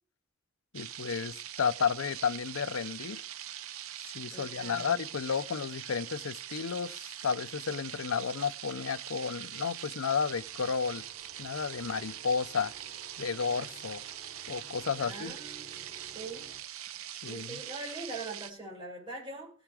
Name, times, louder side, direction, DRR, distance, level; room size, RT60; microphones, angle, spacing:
voice 1, 0.7-3.2 4.1-11.0 11.4-12.7 13.2-14.0 14.5-15.4 17.2-17.6, left 6 dB, 80° left, 0.6 m, -32 dB
sound 1, 0.7-18.5, right 11 dB, 85° right, 0.6 m, -43 dB
voice 2, 4.3-5.0 15.0-15.7 16.1-16.5 17.3-19.5, right 3 dB, 25° right, 6.5 m, -42 dB
sound 2, 10.3-16.6, right 3 dB, 50° right, 4.3 m, -55 dB
17.0 x 7.2 x 4.8 m
head